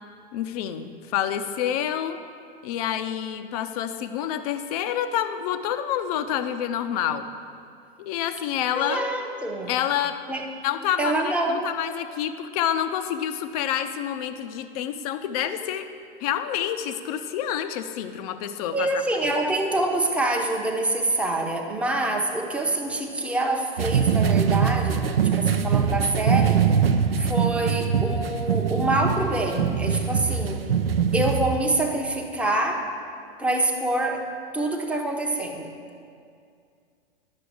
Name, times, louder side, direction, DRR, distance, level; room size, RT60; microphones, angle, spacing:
voice 1, 0.3-2.2 2.6-7.2 8.0-9.1 9.7-10.2 10.6-11.2 11.5-15.9 16.2-18.9 19.2-19.3, left 10 dB, 40° left, 9 dB, 0.7 m, -28 dB
voice 2, 8.7-9.7 10.3-10.5 11.0-11.7 18.7-26.7 27.2-30.7 31.1-32.9 33.4-35.7, right 2 dB, 5° right, 1 dB, 1.0 m, -26 dB
sound 1, 23.8-31.6, right 7 dB, 70° right, 0.7 m, -23 dB
10.5 x 6.8 x 8.4 m, 2.3 s
figure-of-eight pair, 100°, 30 cm